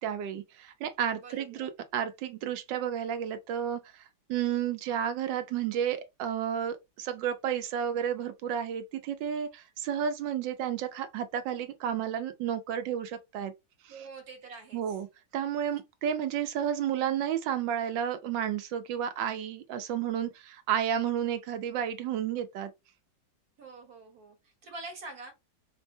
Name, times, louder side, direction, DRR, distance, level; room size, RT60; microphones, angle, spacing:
voice 1, 0.0-4.0 4.3-13.5 13.8-13.9 14.7-15.1 15.3-22.7, right 9 dB, 80° right, 1.3 m, -32 dB
voice 2, 1.1-1.7 13.9-14.8 23.6-25.3, right 3 dB, 55° right, 1.6 m, -45 dB
5.2 x 2.1 x 2.6 m
omnidirectional pair, 2.0 m